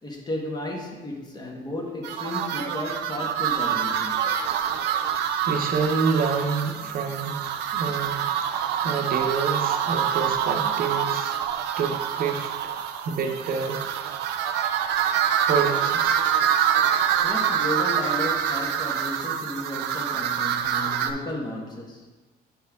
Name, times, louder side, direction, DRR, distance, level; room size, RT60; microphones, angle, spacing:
voice 1, 0.0-4.3 17.2-22.1, left 1 dB, 25° left, 0 dB, 1.4 m, -33 dB
sound 1, 2.0-21.1, right 9 dB, 85° right, 0.5 m, -26 dB
voice 2, 5.4-11.4 11.8-12.7 13.0-13.8 15.5-16.2, right 5 dB, 60° right, 4 dB, 1.0 m, -28 dB
8.6 x 4.4 x 3.6 m, 1.2 s
cardioid pair, 110°, 17 cm